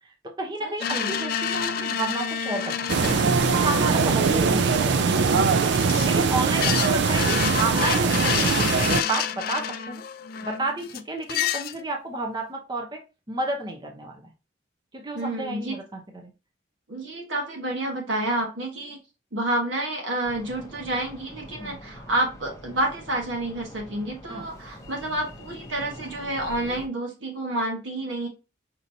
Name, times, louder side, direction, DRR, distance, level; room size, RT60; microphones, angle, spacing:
voice 1, 0.0-3.1 3.5-5.6 6.0-10.0 10.4-13.0 13.3-14.2 14.9-16.3 21.6-21.8 24.2-24.5, right 2 dB, 20° right, 1 dB, 0.6 m, -31 dB
voice 2, 0.6-1.1 6.7-7.0 15.1-15.8 16.9-19.0 19.3-28.3, right 1 dB, 80° right, 0 dB, 1.2 m, -29 dB
sound 1, 0.8-6.2 6.6-11.0 11.3-11.8, left 8 dB, 50° left, 0.3 m, -29 dB
sound 2, 2.9-9.0, right 5 dB, 60° right, 0.4 m, -21 dB
sound 3, 20.2-26.9, left 1 dB, 15° left, 0.6 m, -44 dB
5.2 x 2.9 x 2.6 m, 0.30 s
head